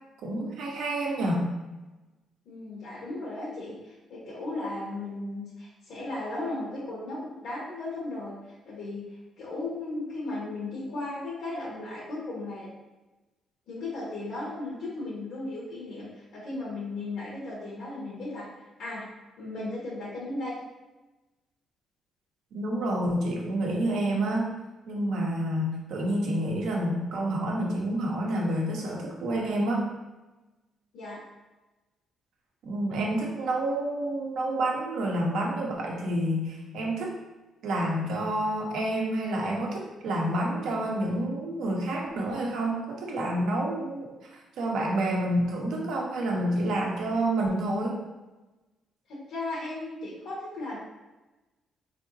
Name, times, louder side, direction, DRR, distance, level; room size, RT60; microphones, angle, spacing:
voice 1, 0.2-1.5 22.5-24.5 24.9-29.9 32.6-37.2 37.6-44.1 44.6-48.0, right 1 dB, 80° right, -1 dB, 0.8 m, -28 dB
voice 2, 2.4-8.4 8.6-12.7 13.7-19.1 19.4-20.5 30.9-31.2 49.1-50.8, left 2 dB, 80° left, -7 dB, 1.2 m, -36 dB
3.9 x 3.4 x 2.6 m, 1.1 s
cardioid pair, 90°, 0 cm